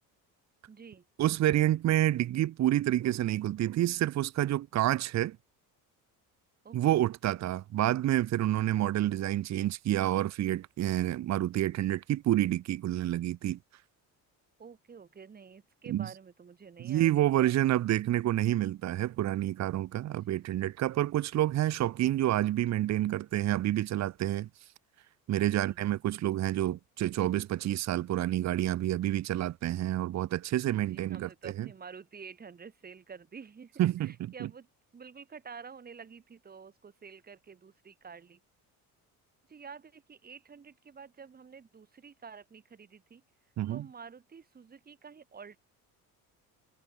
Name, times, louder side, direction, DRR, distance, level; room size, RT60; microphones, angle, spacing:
voice 1, 0.7-1.0 6.6-7.1 14.6-17.7 20.1-20.5 25.4-25.8 30.7-34.7 34.9-38.4 39.5-43.2 43.7-45.6, right 6 dB, 25° right, 5.2 m, -49 dB
voice 2, 1.2-5.4 6.7-13.6 15.9-16.1 16.8-24.5 25.3-31.7 33.8-34.5 43.6-43.8, right 13 dB, 45° right, 1.2 m, -28 dB
cardioid pair, 150°, 37 cm